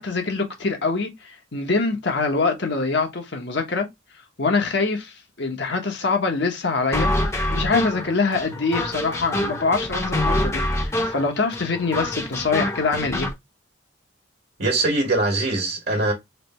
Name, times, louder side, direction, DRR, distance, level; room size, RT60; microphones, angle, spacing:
voice 1, 0.0-3.9 4.4-7.1 7.5-13.3, left 4 dB, 60° left, 1.0 m, -24 dB
sound 1, 6.9-13.3, left 1 dB, 15° left, 0.8 m, -26 dB
voice 2, 14.6-16.1, right 2 dB, 60° right, 1.4 m, -22 dB
3.3 x 2.7 x 4.2 m
head